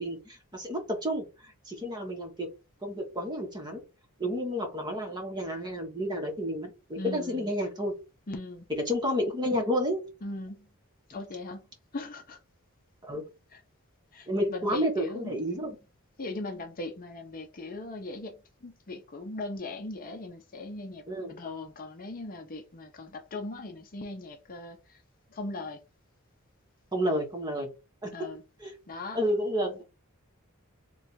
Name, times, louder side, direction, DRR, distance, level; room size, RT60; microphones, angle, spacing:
voice 1, 0.0-2.5 2.8-3.8 4.2-7.9 8.7-10.0 13.0-13.3 14.3-15.8 21.1-21.3 26.9-27.7 28.0-28.3 28.6-28.7 29.1-29.8, equal, 20° right, 1.1 m, -31 dB
voice 2, 7.0-7.5 8.3-8.7 10.2-10.7 11.1-11.7 11.9-12.4 13.5-13.6 14.1-15.4 16.2-25.0 25.3-25.8 28.1-28.4 28.9-29.2, left 2 dB, 40° left, 0.6 m, -39 dB
3.3 x 2.3 x 4.1 m
head